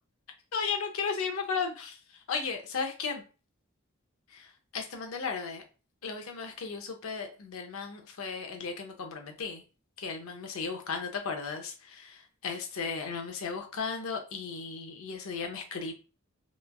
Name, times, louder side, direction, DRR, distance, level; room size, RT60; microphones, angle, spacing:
voice 1, 0.5-2.0 2.3-3.2 4.3-4.5 4.7-5.6 6.0-9.6 10.0-15.9, left 5 dB, 80° left, 4 dB, 0.6 m, -35 dB
3.0 x 2.2 x 2.2 m, 0.35 s
head